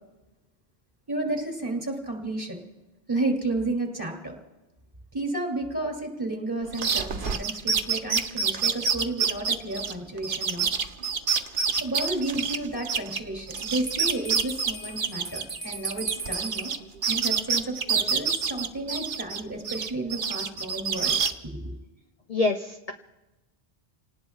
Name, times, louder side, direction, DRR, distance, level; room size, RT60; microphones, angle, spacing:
voice 1, 1.1-2.6 3.1-4.4 5.1-10.7 11.8-16.7 17.1-21.2 21.4-21.8, right 2 dB, 20° right, 1 dB, 2.8 m, -32 dB
sound 1, 6.7-13.2 13.5-16.8 17.0-19.4 19.6-21.3, right 6 dB, 55° right, 1.0 m, -27 dB
Bell, 13.6-16.7, right 4 dB, 10° left, 1.5 m, -37 dB
voice 2, 22.3-22.9, left 3 dB, 45° left, 5 dB, 0.7 m, -26 dB
29.5 x 19.0 x 2.4 m, 1.1 s
omnidirectional pair, 1.0 m